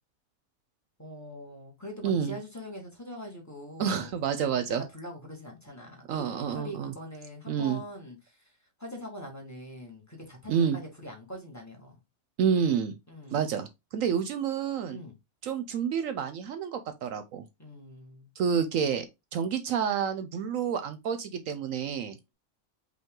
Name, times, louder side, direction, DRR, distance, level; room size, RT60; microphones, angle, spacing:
voice 1, 1.0-4.1 4.5-8.5 8.8-11.9 13.1-13.4 14.9-15.1 17.6-18.3, left 1 dB, 10° left, 1.4 m, -43 dB
voice 2, 2.0-2.4 3.8-4.8 6.1-6.9 7.5-7.8 10.5-10.8 12.4-13.0 13.3-15.0 15.4-17.4 18.4-19.1 19.3-22.2, right 7 dB, 75° right, 0.9 m, -29 dB
5.3 x 2.7 x 3.7 m
omnidirectional pair, 1.5 m